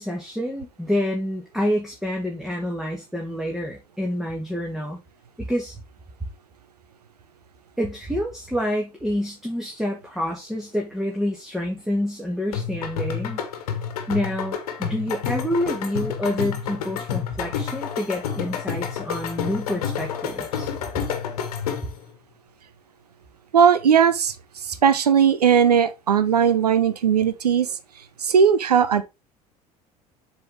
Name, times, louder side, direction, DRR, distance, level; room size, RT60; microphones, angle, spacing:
voice 1, 0.0-5.0 5.4-5.8 7.8-13.4 14.1-21.0, equal, ahead, 1.7 m, -28 dB
sound 1, 12.5-22.0, left 8 dB, 70° left, 1.3 m, -29 dB
voice 2, 23.5-24.3 24.6-27.7 28.2-29.0, right 7 dB, 80° right, 0.7 m, -18 dB
7.6 x 4.1 x 3.5 m
figure-of-eight pair, 60°, 20 cm